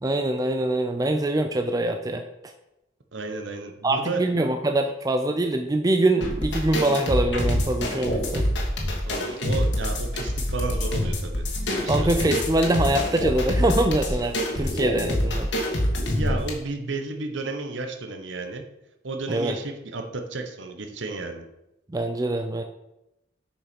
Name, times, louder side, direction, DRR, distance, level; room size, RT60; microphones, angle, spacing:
voice 1, 0.0-2.5 3.8-8.5 11.9-15.5 19.3-19.6 21.9-22.6, right 1 dB, 20° right, 6 dB, 0.4 m, -24 dB
voice 2, 3.1-4.2 9.1-11.4 11.8-12.3 16.1-18.6 19.0-21.4, right 3 dB, 65° right, 5 dB, 1.0 m, -32 dB
sound 1, 6.2-16.5, left 1 dB, 60° left, 1.7 m, -26 dB
6.9 x 5.6 x 5.2 m, 0.90 s
head